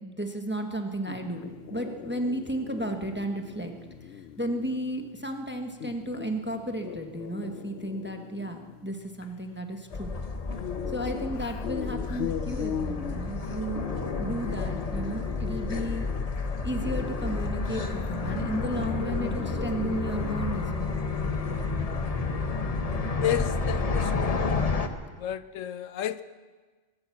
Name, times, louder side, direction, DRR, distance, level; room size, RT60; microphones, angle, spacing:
voice 1, 0.0-3.7 4.1-10.1 10.9-13.9 14.2-16.1 16.6-20.9, right 1 dB, 10° right, 4 dB, 1.0 m, -33 dB
sound 1, 1.1-20.6, left 9 dB, 60° left, 0.8 m, -40 dB
sound 2, 9.9-24.9, left 3 dB, 35° left, 0.9 m, -30 dB
voice 2, 23.2-24.7 25.1-26.2, left 11 dB, 80° left, 14 dB, 1.1 m, -32 dB
23.0 x 8.9 x 7.1 m, 1.4 s
omnidirectional pair, 1.3 m